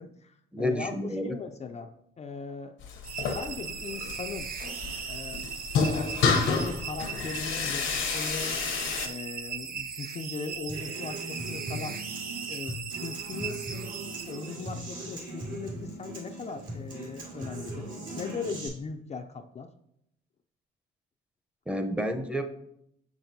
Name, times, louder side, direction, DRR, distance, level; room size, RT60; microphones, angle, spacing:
voice 1, 0.0-1.9 2.2-2.8 3.3-4.5 5.1-5.4 5.9-8.6 9.0-12.0 12.5-13.6 14.3-17.9 18.2-19.7, left 4 dB, 35° left, 5 dB, 0.4 m, -39 dB
voice 2, 0.5-1.4 21.7-22.4, equal, 5° right, 6 dB, 0.7 m, -30 dB
sound 1, 2.8-9.1, left 5 dB, 80° left, 0.9 m, -30 dB
sound 2, 3.0-14.9, right 6 dB, 50° right, 0.6 m, -38 dB
Human voice / Acoustic guitar, 10.7-18.7, right 1 dB, 75° right, 2.5 m, -39 dB
6.8 x 5.9 x 2.7 m, 0.77 s
cardioid pair, 90°, 20 cm